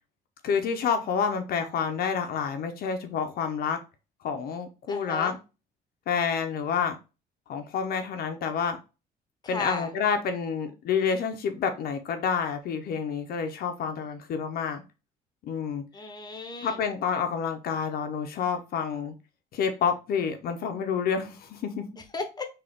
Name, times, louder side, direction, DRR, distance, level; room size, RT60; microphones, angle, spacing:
voice 1, 0.4-3.8 4.2-5.4 6.1-7.0 7.5-8.8 9.5-14.8 15.4-15.8 16.6-19.1 19.5-21.9, left 6 dB, 65° left, 0.6 m, -28 dB
voice 2, 4.9-5.3 9.4-9.9 15.9-16.8 22.1-22.4, left 3 dB, 25° left, 0.9 m, -34 dB
3.8 x 2.4 x 3.4 m
cardioid pair, 110°, 17 cm